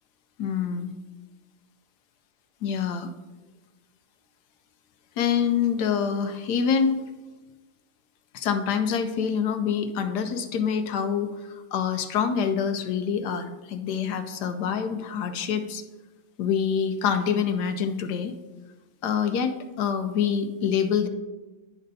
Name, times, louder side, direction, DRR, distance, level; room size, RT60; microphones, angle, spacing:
voice 1, 0.4-0.9 2.6-3.1 5.2-7.0 8.3-15.8 16.4-18.3 19.0-21.1, left 7 dB, 70° left, 8 dB, 1.1 m, -26 dB
11.0 x 5.2 x 2.7 m, 1.1 s
omnidirectional pair, 1.9 m